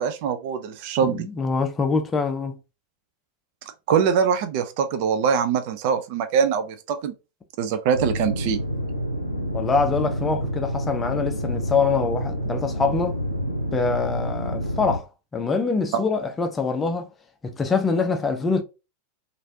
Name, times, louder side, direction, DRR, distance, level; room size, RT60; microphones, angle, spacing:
voice 1, 0.0-1.3 3.9-7.1 7.6-8.6, right 7 dB, 45° right, 0.4 m, -23 dB
voice 2, 1.0-2.6 9.5-13.2 13.7-15.1 15.3-17.1 17.4-18.6, left 4 dB, 15° left, 0.5 m, -24 dB
sound 1, 7.9-15.0, equal, 90° left, 0.6 m, -28 dB
3.1 x 2.5 x 2.6 m
figure-of-eight pair, 90°, 0 cm